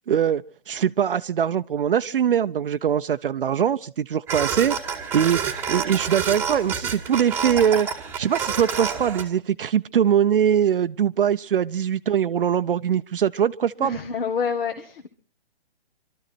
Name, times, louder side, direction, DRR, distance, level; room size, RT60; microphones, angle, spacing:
voice 1, 0.1-5.4 5.7-7.9 8.2-14.0, right 8 dB, 55° right, 0.7 m, -22 dB
sound 1, 4.3-9.2, right 6 dB, 5° right, 1.2 m, -28 dB
voice 2, 13.8-15.1, left 6 dB, 60° left, 1.8 m, -27 dB
25.0 x 13.0 x 4.2 m
hypercardioid pair, 160°, 32 cm